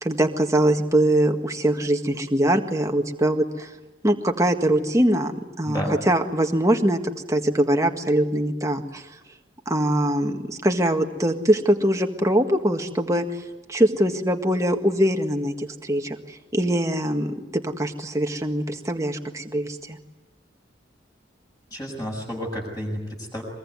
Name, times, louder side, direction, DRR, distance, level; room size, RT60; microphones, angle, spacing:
voice 1, 0.0-3.7 4.0-5.3 5.6-7.0 7.3-9.0 9.7-13.2 13.7-17.3 17.6-20.0, right 1 dB, 15° right, 4 dB, 1.7 m, -22 dB
voice 2, 5.6-6.0 21.7-23.4, equal, 20° left, -1 dB, 6.3 m, -31 dB
23.0 x 23.0 x 9.6 m, 1.1 s
head